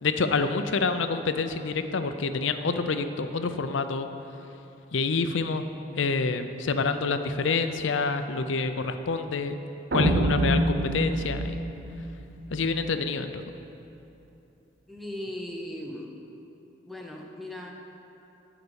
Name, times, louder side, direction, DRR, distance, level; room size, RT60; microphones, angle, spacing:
voice 1, 0.0-4.1 4.9-5.6 6.0-9.6 9.9-11.5 12.5-13.4, left 4 dB, 80° left, 9 dB, 0.6 m, -27 dB
sound 1, 9.9-13.0, right 1 dB, 60° right, 0.7 m, -26 dB
voice 2, 14.9-16.1 16.9-17.7, left 1 dB, ahead, -1 dB, 0.8 m, -38 dB
12.5 x 5.0 x 7.0 m, 2.9 s
head